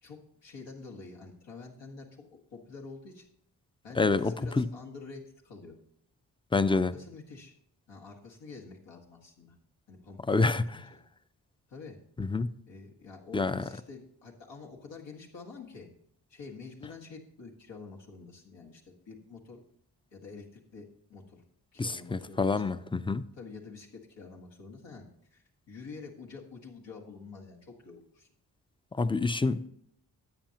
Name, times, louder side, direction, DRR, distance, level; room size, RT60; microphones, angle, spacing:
voice 1, 0.0-3.3 3.8-5.8 6.7-7.5 7.9-9.5 9.9-11.0 11.7-12.0 12.7-15.9 16.3-19.6 20.1-21.4 21.7-22.7 23.3-28.3 29.4-29.6, left 4 dB, 80° left, 1.8 m, -47 dB
voice 2, 4.0-4.7 6.5-6.9 10.3-10.7 12.2-12.5 13.3-13.6 21.8-23.3 28.9-29.7, left 3 dB, 10° left, 0.4 m, -27 dB
13.0 x 8.4 x 2.9 m
supercardioid pair, 40°, 43 cm